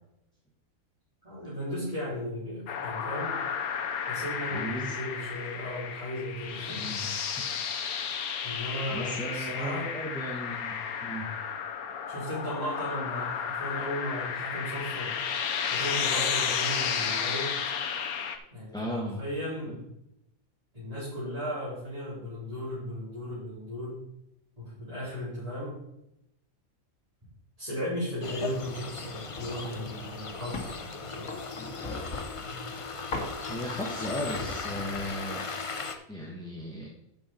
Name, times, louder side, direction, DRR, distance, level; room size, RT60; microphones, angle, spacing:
voice 1, 1.2-3.4 4.1-7.2 8.4-9.9 12.1-15.2 15.6-17.5 18.5-19.8 20.7-24.0 24.6-25.8 27.6-31.3 32.5-32.6, equal, 25° right, -12 dB, 4.0 m, -36 dB
sound 1, 2.7-18.4, left 7 dB, 85° left, 1.3 m, -32 dB
voice 2, 4.5-5.0 6.7-7.1 7.4-7.5 8.0-8.1 8.9-10.7 11.0-11.3 18.7-19.2 19.7-19.8 33.5-35.4 36.1-36.9, equal, 5° left, -1 dB, 1.0 m, -36 dB
sound 2, 28.2-36.0, left 4 dB, 40° left, 0.5 m, -38 dB
sound 3, 29.3-29.6 30.0-30.8 31.3-32.5 33.1-33.4 33.8-35.2, left 2 dB, 65° left, 1.9 m, -38 dB
11.5 x 5.5 x 4.4 m, 0.83 s
omnidirectional pair, 1.5 m